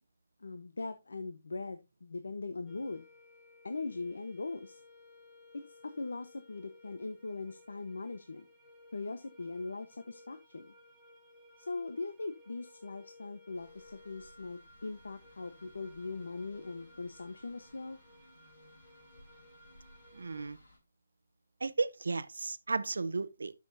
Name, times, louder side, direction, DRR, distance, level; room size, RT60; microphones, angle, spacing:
voice 1, 0.4-3.1 3.6-4.8 5.7-8.5 8.9-10.7 11.6-18.0, left 3 dB, 90° left, 0.9 m, -40 dB
sound 1, 2.7-20.5, left 2 dB, ahead, 1.1 m, -59 dB
sound 2, 13.5-20.8, left 1 dB, 45° left, 4.8 m, -61 dB
voice 2, 20.1-20.6 21.6-23.5, right 3 dB, 80° right, 0.7 m, -34 dB
12.0 x 6.2 x 2.6 m
hypercardioid pair, 175°, 0 cm